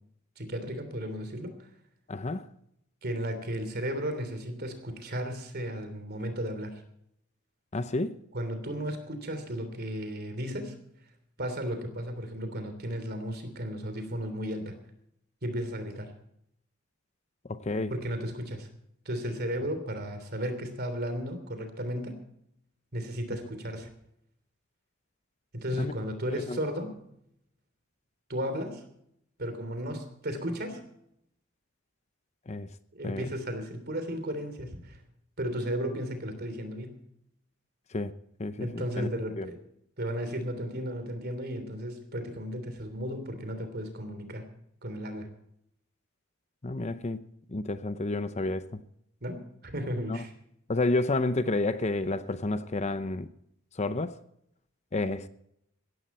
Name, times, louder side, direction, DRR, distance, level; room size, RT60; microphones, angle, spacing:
voice 1, 0.4-1.6 3.0-6.8 8.3-10.8 11.4-14.8 15.4-16.1 17.9-18.7 19.0-22.2 22.9-23.9 25.5-26.9 28.3-28.8 29.4-30.8 32.9-35.0 35.4-37.0 38.6-39.6 40.0-44.5 44.8-45.3 49.2-50.3, equal, 50° right, 3.1 m, -34 dB
voice 2, 2.1-2.5 7.7-8.2 17.5-17.9 25.8-25.9 26.3-26.6 32.5-32.7 33.0-33.3 37.9-38.1 38.4-39.1 39.4-39.5 46.6-47.2 47.5-48.8 50.1-50.2 50.7-53.3 53.8-54.1 54.9-55.3, left 2 dB, 30° left, 0.7 m, -30 dB
17.0 x 14.5 x 4.3 m
head